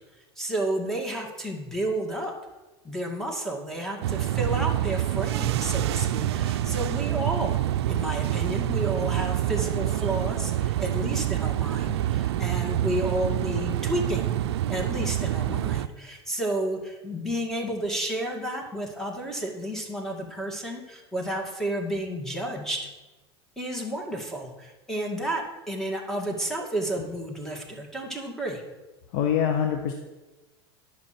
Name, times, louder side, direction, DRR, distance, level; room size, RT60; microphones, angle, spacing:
voice 1, 0.4-2.3 2.8-7.6 7.9-14.3 14.7-22.9 23.6-28.6, right 1 dB, 5° left, 1 dB, 2.3 m, -31 dB
sound 1, 4.0-15.9, right 12 dB, 80° right, 0.4 m, -27 dB
voice 2, 29.1-29.9, left 8 dB, 65° left, 4 dB, 1.1 m, -24 dB
10.5 x 6.2 x 6.0 m, 1.1 s
hypercardioid pair, 95°, 14 cm